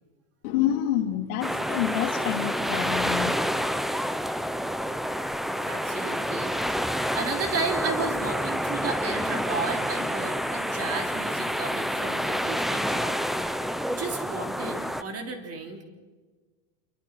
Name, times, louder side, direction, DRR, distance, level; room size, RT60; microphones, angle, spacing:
voice 1, 0.4-3.3 4.0-4.1 5.4-5.8, left 11 dB, 85° left, 4 dB, 2.4 m, -28 dB
sound 1, 1.4-15.0, equal, ahead, 0.6 m, -28 dB
voice 2, 5.7-13.2 13.9-15.8, right 4 dB, 35° right, 4 dB, 3.6 m, -33 dB
27.0 x 24.0 x 4.6 m, 1.3 s
supercardioid pair, 135°, 43 cm